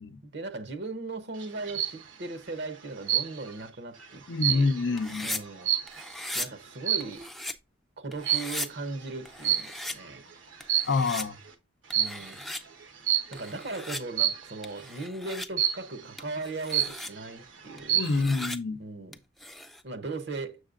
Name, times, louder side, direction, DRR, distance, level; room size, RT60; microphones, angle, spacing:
voice 1, 0.2-4.7 5.2-5.7 6.3-7.3 8.0-10.2 12.0-12.4 13.3-18.0 18.8-19.1 19.8-20.6, right 3 dB, 60° right, 0.8 m, -38 dB
sound 1, 1.4-2.0 3.1-3.6 4.0-6.2 6.8-7.2 8.2-8.6 9.4-10.0 10.5-11.2 11.9-12.3 13.1-13.5 14.2-14.6 15.6-16.0 16.4-16.5 16.7-17.3 17.7-18.2, right 11 dB, 85° right, 1.1 m, -28 dB
voice 2, 4.3-5.3 10.9-11.4 17.9-18.8, left 3 dB, 70° left, 0.5 m, -27 dB
sound 2, 5.0-5.4 5.9-6.5 7.0-7.5 8.1-8.7 9.3-10.0 10.6-11.3 11.9-12.6 13.3-14.0 14.6-15.5 16.2-17.1 17.8-18.6 19.1-19.8, left 1 dB, ahead, 0.4 m, -38 dB
7.3 x 6.4 x 2.4 m
head